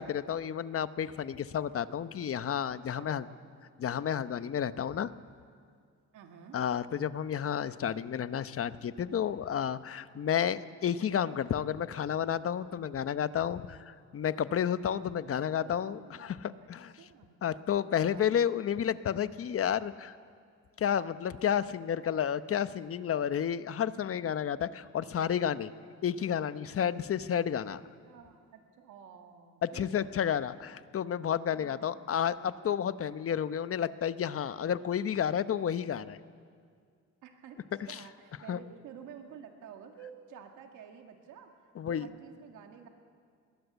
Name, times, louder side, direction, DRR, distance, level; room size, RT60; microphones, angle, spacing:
voice 1, 0.0-3.2 3.8-5.1 6.5-17.1 17.4-20.2 20.8-25.7 26.0-27.8 29.6-36.2 37.9-38.0 38.5-38.6 41.8-42.1, left 9 dB, 50° left, 13 dB, 0.9 m, -31 dB
voice 2, 2.9-3.4 6.1-6.6 15.4-16.7 17.0-17.4 18.0-18.6 25.0-25.6 28.0-29.9 31.5-32.1 37.2-37.6 37.9-41.5 41.8-42.9, right 8 dB, 85° right, 4 dB, 2.1 m, -51 dB
21.5 x 19.5 x 8.1 m, 2.1 s
cardioid pair, 90°, 30 cm